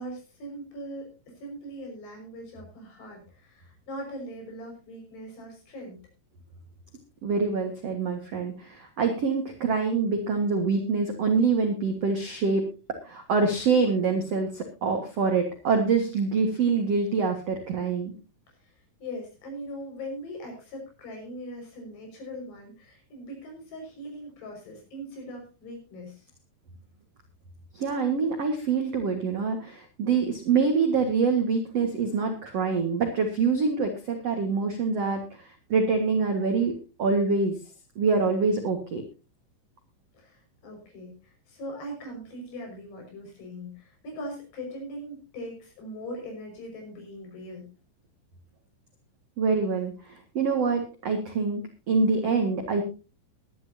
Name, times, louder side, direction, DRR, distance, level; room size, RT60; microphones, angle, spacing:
voice 1, 0.0-6.0 18.6-18.7 19.0-26.3 40.1-47.7, equal, 65° left, 1 dB, 7.8 m, -40 dB
voice 2, 7.2-12.6 13.0-18.1 27.7-36.7 37.0-37.6 38.0-39.0 49.4-51.6 51.9-52.8, right 4 dB, 55° right, 4 dB, 1.9 m, -25 dB
22.0 x 11.0 x 2.8 m, 0.31 s
omnidirectional pair, 5.2 m